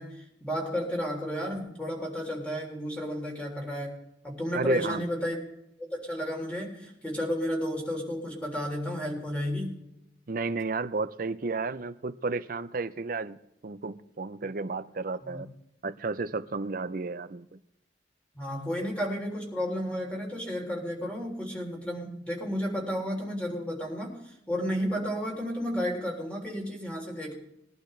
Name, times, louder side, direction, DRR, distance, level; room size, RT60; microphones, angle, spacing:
voice 1, 0.0-4.0 4.2-5.4 5.8-9.8 15.2-15.4 18.3-27.3, equal, 5° left, 3.4 m, -32 dB
voice 2, 4.5-5.1 10.3-13.4 13.6-15.5 15.8-17.6, right 3 dB, 50° right, 0.6 m, -32 dB
21.5 x 11.5 x 3.3 m
head